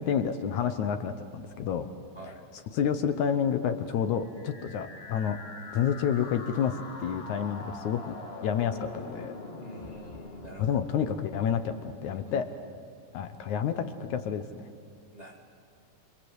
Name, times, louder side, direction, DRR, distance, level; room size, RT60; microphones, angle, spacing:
voice 1, 0.0-1.9 2.7-5.4 5.7-8.2 8.4-9.3 10.6-12.5 13.1-14.7, left 8 dB, 70° left, 9 dB, 2.2 m, -29 dB
sound 1, 4.2-12.1, left 3 dB, 35° left, 1.0 m, -44 dB
voice 2, 9.6-10.8 12.1-12.5 15.1-15.4, right 1 dB, 25° right, 0 dB, 1.8 m, -46 dB
27.0 x 24.5 x 8.1 m, 2.4 s
omnidirectional pair, 3.9 m